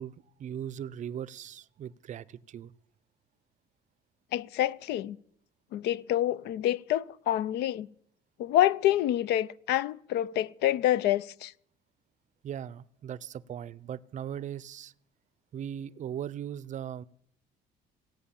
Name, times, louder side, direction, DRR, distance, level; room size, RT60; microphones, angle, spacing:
voice 1, 0.0-2.7 12.4-14.9 15.5-17.0, right 9 dB, 45° right, 0.5 m, -39 dB
voice 2, 4.3-5.2 5.7-7.9 8.4-11.5, left 13 dB, 80° left, 0.5 m, -27 dB
17.0 x 9.2 x 7.1 m
cardioid pair, 110°, 17 cm